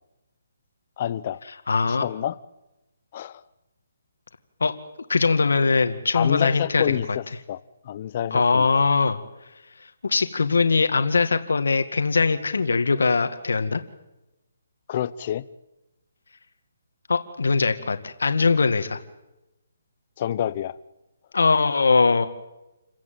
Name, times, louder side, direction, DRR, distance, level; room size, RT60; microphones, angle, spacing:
voice 1, 1.0-1.4 1.9-2.4 3.1-3.4 6.1-7.2 7.5-7.6 7.8-8.7 14.9-15.4 20.2-20.7, left 11 dB, 35° left, 0.8 m, -27 dB
voice 2, 1.7-2.1 4.6-4.8 5.1-7.0 8.3-9.2 10.0-13.8 17.1-19.0 21.3-22.3, left 4 dB, 85° left, 1.9 m, -21 dB
29.0 x 16.0 x 9.2 m
hypercardioid pair, 165°, 0 cm